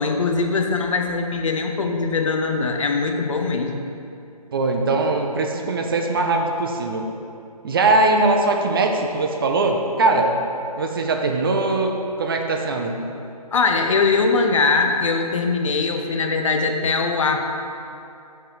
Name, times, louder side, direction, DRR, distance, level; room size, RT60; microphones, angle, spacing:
voice 1, 0.0-3.9 13.5-17.5, left 4 dB, 55° left, 4 dB, 0.7 m, -21 dB
voice 2, 4.5-7.0 7.6-10.4 10.8-13.0, right 2 dB, 35° right, 3 dB, 0.6 m, -21 dB
7.5 x 3.4 x 5.7 m, 2.7 s
figure-of-eight pair, 150°, 20 cm